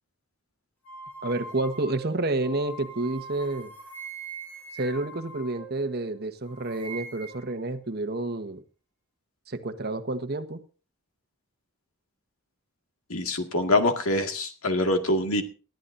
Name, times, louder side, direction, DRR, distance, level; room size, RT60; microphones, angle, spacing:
sound 1, 0.8-6.1 6.4-7.5, right 3 dB, 10° left, 7.0 m, -42 dB
voice 1, 1.2-3.7 4.7-8.6 9.5-10.6, right 2 dB, 45° right, 8 dB, 1.2 m, -29 dB
voice 2, 13.1-15.4, left 1 dB, 70° left, 4 dB, 2.1 m, -24 dB
20.0 x 13.0 x 2.7 m, 0.35 s
head